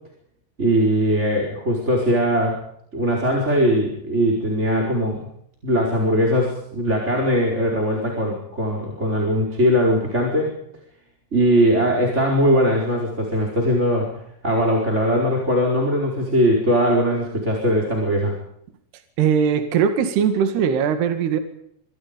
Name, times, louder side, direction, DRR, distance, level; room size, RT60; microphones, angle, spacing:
voice 1, 0.6-2.6 2.9-5.2 5.6-10.5 11.3-14.1 14.4-18.3, equal, 15° right, 0 dB, 4.5 m, -20 dB
voice 2, 19.2-21.4, right 7 dB, 65° right, 8 dB, 3.8 m, -20 dB
25.5 x 25.0 x 5.3 m, 0.70 s
omnidirectional pair, 5.4 m